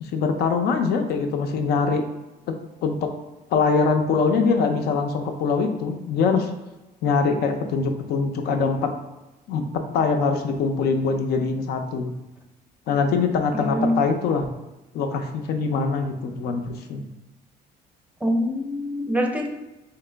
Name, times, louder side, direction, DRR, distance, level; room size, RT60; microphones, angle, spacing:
voice 1, 0.0-2.1 2.5-2.6 2.8-3.1 3.5-6.5 7.0-8.9 9.5-9.7 9.9-12.1 12.9-14.5 14.9-17.0, left 4 dB, 75° left, 5 dB, 0.5 m, -23 dB
voice 2, 13.5-13.9 18.2-19.5, equal, 10° right, 2 dB, 0.5 m, -24 dB
3.2 x 2.9 x 3.3 m, 1.0 s
cardioid pair, 110°, 17 cm